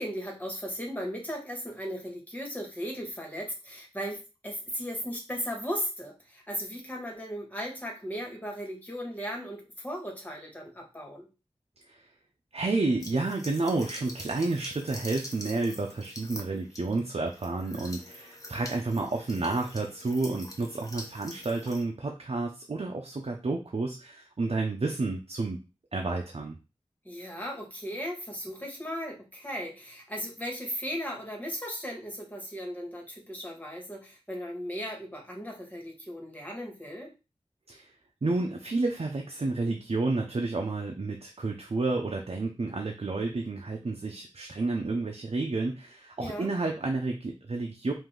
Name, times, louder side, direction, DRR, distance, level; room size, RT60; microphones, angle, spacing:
voice 1, 0.0-11.3 27.1-37.1 46.2-46.5, equal, 15° left, 0 dB, 1.7 m, -37 dB
voice 2, 12.5-25.6 25.9-26.6 37.7-37.9 38.2-47.9, right 3 dB, 65° right, 2 dB, 0.7 m, -30 dB
sound 1, 13.0-21.8, left 1 dB, 30° left, 0.9 m, -45 dB
5.0 x 2.7 x 3.8 m, 0.29 s
wide cardioid pair, 65°, 11 cm